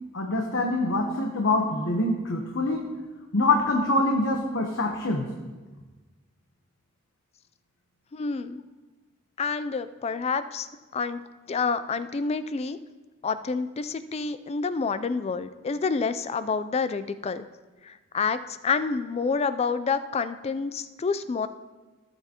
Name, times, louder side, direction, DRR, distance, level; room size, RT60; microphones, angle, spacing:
voice 1, 0.1-2.8 3.3-5.2, left 2 dB, 65° left, 2 dB, 0.9 m, -25 dB
voice 2, 8.1-8.6 9.4-10.7 10.9-11.2 11.5-12.8 13.2-17.4 17.8-21.5, left 5 dB, 30° left, 12 dB, 0.4 m, -28 dB
15.5 x 7.0 x 2.9 m, 1.3 s
head